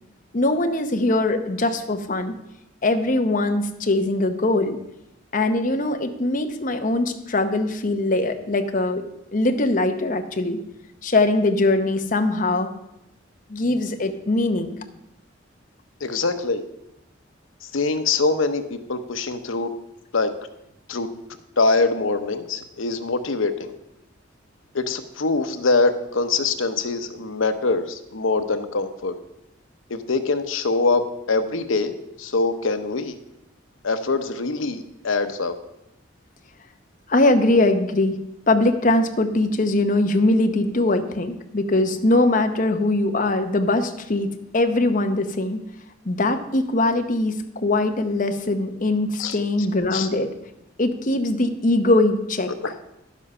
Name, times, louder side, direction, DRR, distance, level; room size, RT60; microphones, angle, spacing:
voice 1, 0.3-2.3 2.8-4.8 5.3-9.1 9.3-10.6 11.0-12.7 13.5-14.8 37.1-38.2 38.5-45.6 46.0-50.3 50.8-52.5, left 2 dB, 40° left, 7 dB, 0.9 m, -21 dB
voice 2, 16.0-16.6 17.6-19.7 20.1-20.3 20.9-21.1 21.6-23.7 24.7-29.1 29.9-33.2 33.8-35.5 49.2-49.4 49.9-50.1 52.6-52.7, left 3 dB, 90° left, 9 dB, 0.9 m, -23 dB
11.0 x 7.3 x 5.4 m, 0.86 s
head